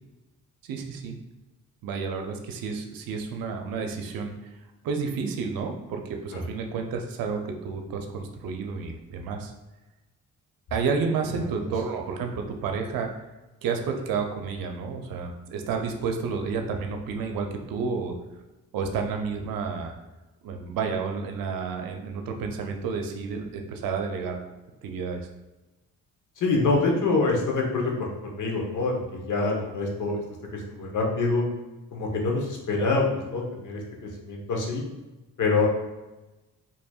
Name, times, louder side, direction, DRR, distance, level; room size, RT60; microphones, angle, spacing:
voice 1, 0.6-1.2 1.8-4.3 4.8-9.5 10.7-13.1 13.6-18.1 18.7-19.9 20.4-24.4 24.8-25.3, right 5 dB, 75° right, 4 dB, 0.6 m, -30 dB
voice 2, 26.4-30.2 30.5-31.4 31.9-34.8 35.4-35.7, left 3 dB, 60° left, 0 dB, 1.0 m, -26 dB
4.3 x 2.9 x 2.3 m, 1.1 s
supercardioid pair, 65°, 35 cm